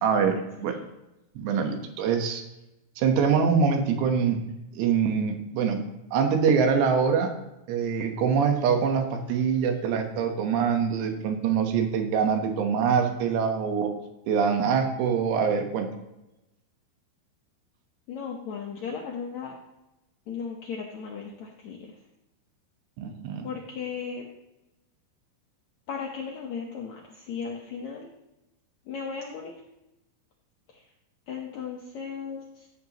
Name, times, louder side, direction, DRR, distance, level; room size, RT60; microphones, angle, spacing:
voice 1, 0.0-0.7 1.4-2.4 3.0-4.4 4.7-5.8 6.1-7.3 7.7-13.9 14.3-15.9 23.0-23.5, right 6 dB, 90° right, 5 dB, 3.4 m, -24 dB
voice 2, 18.1-19.5 20.3-22.0 23.4-24.3 25.9-28.1 28.9-29.5 30.7-30.8 31.3-32.7, left 6 dB, 85° left, -1 dB, 1.6 m, -36 dB
15.0 x 8.0 x 3.0 m, 0.93 s
omnidirectional pair, 4.8 m